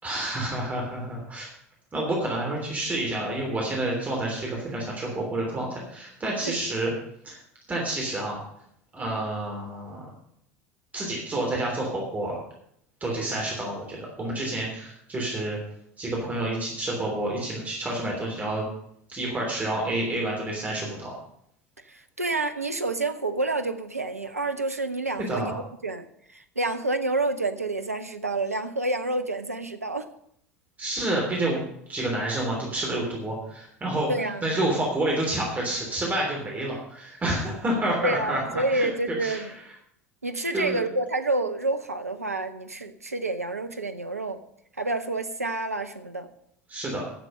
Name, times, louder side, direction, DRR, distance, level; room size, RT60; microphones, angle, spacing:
voice 1, 0.0-1.5 1.9-6.9 7.2-7.4 7.7-8.4 8.9-10.0 10.9-12.4 13.0-15.6 16.0-18.6 19.1-21.1 25.3-25.5 30.8-31.6 31.9-34.1 34.4-38.9 39.2-39.4 40.5-40.8 46.7-47.0, right 1 dB, 20° right, -2 dB, 3.3 m, -29 dB
voice 2, 21.8-25.5 25.8-30.1 34.1-34.4 38.0-39.6 40.2-44.4 44.8-46.3, right 2 dB, 85° right, 9 dB, 0.8 m, -28 dB
10.5 x 7.5 x 6.8 m, 0.71 s
figure-of-eight pair, 75°, 8 cm